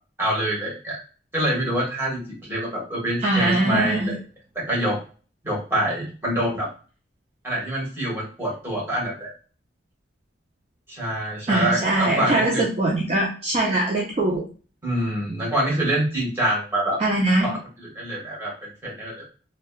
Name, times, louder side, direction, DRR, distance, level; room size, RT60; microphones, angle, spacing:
voice 1, 0.2-1.0 1.3-4.2 4.5-5.0 5.4-6.7 7.4-9.3 10.9-12.6 14.8-17.0 17.4-19.3, right 1 dB, 15° right, -5 dB, 1.0 m, -26 dB
voice 2, 3.2-4.2 11.5-14.5 17.0-17.6, right 2 dB, 35° right, -3 dB, 0.4 m, -22 dB
2.7 x 2.1 x 2.2 m, 0.37 s
head